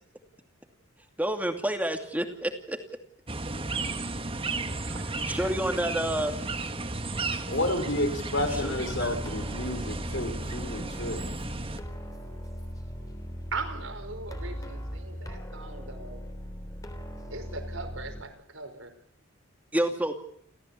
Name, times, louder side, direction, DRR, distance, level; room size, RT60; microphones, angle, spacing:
voice 1, 1.2-2.8 5.3-6.3 8.5-8.7 9.0-9.1 19.7-20.1, right 1 dB, 5° right, 6 dB, 2.5 m, -29 dB
sound 1, 3.3-11.8, right 3 dB, 25° right, 1.5 m, -34 dB
voice 2, 4.6-5.8 13.5-16.2 17.3-18.9, right 3 dB, 75° right, 6 dB, 5.3 m, -40 dB
voice 3, 7.5-11.2, left 1 dB, 60° left, 6 dB, 5.5 m, -30 dB
sound 2, 8.4-18.2, equal, 15° left, 3.4 m, -39 dB
29.5 x 15.0 x 8.6 m, 0.65 s
head